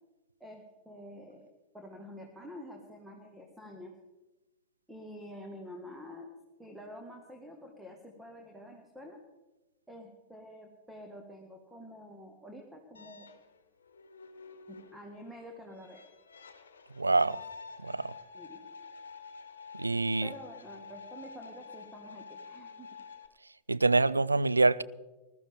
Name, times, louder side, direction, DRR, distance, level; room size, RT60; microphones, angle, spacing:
voice 1, 0.4-1.5 1.7-3.9 4.9-6.3 6.6-9.2 9.9-13.3 14.7-16.0 18.3-18.6 20.2-22.9, equal, 5° right, 1.6 m, -48 dB
sound 1, 12.9-23.3, left 5 dB, 70° left, 1.1 m, -49 dB
voice 2, 17.0-17.4 17.8-18.1 19.8-20.3 23.7-24.8, right 3 dB, 80° right, 0.4 m, -25 dB
20.5 x 13.0 x 3.5 m
figure-of-eight pair, 90°, 0 cm